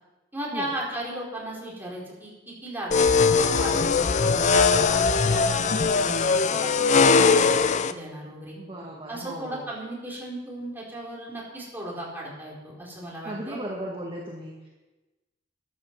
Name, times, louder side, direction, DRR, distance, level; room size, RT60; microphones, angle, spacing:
voice 1, 0.3-3.3 3.6-8.6 9.1-13.6, right 1 dB, 10° right, -4 dB, 4.2 m, -36 dB
sound 1, 2.9-7.9, left 5 dB, 40° left, 0.5 m, -20 dB
voice 2, 8.5-9.7 13.2-14.7, right 1 dB, 25° right, -3 dB, 1.9 m, -36 dB
14.5 x 9.9 x 5.9 m, 1.1 s
head